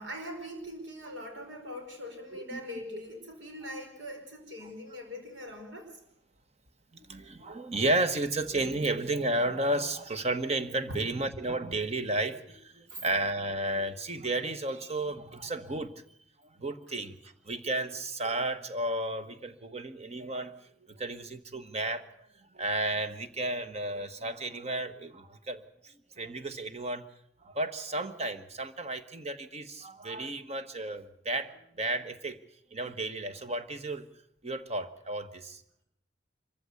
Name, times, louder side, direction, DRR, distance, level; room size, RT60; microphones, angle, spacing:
voice 1, 0.0-6.0 12.9-13.1 16.9-17.0, equal, 80° right, 3 dB, 5.1 m, -42 dB
voice 2, 6.9-15.9 16.4-20.5 21.0-22.1 22.5-27.0 27.4-32.4 32.7-34.1 34.4-35.6, right 2 dB, 35° right, 10 dB, 1.3 m, -33 dB
25.5 x 15.0 x 8.3 m, 0.74 s
head